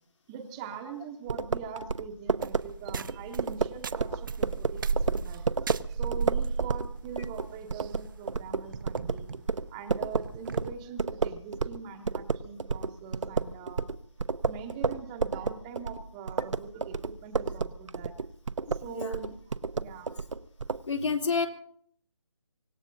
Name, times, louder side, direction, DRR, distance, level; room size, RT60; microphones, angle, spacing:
voice 1, 0.3-5.5 5.8-9.3 9.7-13.9 14.5-18.1 18.7-20.1, right 6 dB, 15° right, 5 dB, 0.8 m, -42 dB
sound 1, 1.3-11.8 12.1-20.8, right 4 dB, 80° right, 0.8 m, -31 dB
sound 2, 2.4-10.7, right 5 dB, 45° right, 0.5 m, -35 dB
voice 2, 20.9-21.5, left 5 dB, 75° left, 2 dB, 3.2 m, -28 dB
25.0 x 18.0 x 2.6 m, 0.63 s
figure-of-eight pair, 160°, 16 cm